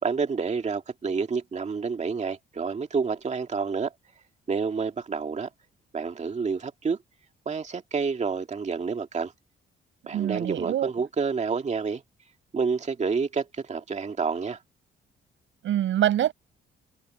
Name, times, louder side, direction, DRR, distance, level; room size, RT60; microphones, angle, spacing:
voice 1, 0.0-3.9 4.5-5.5 5.9-7.0 7.5-9.3 10.1-12.0 12.5-14.6, right 5 dB, 35° right, 2.0 m, -29 dB
voice 2, 10.1-10.9 15.6-16.3, right 11 dB, 75° right, 7.0 m, -25 dB
cardioid pair, 90°, 20 cm